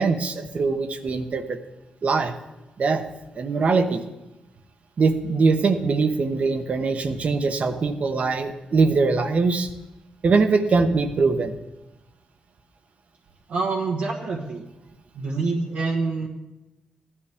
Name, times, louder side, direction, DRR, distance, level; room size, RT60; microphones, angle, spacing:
voice 1, 0.0-1.6 2.0-2.3 2.8-3.0 3.3-4.0 5.0-9.7 10.2-11.5, right 4 dB, 55° right, 8 dB, 1.0 m, -22 dB
voice 2, 13.5-14.6 15.1-16.3, right 3 dB, 80° right, -2 dB, 1.4 m, -26 dB
15.5 x 11.5 x 3.6 m, 1.0 s
cardioid pair, 95°, 3 cm